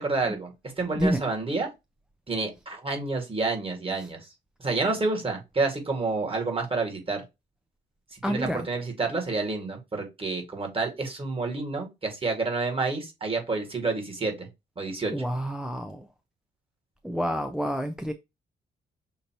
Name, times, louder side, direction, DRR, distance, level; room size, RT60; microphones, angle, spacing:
voice 1, 0.0-1.7 2.3-4.2 4.6-7.2 8.1-14.5 14.8-15.1, right 3 dB, 30° right, 1.9 m, -29 dB
voice 2, 8.2-8.7 15.1-16.1 17.0-18.1, equal, 5° right, 0.4 m, -28 dB
6.6 x 2.8 x 2.9 m
cardioid pair, 90°, 20 cm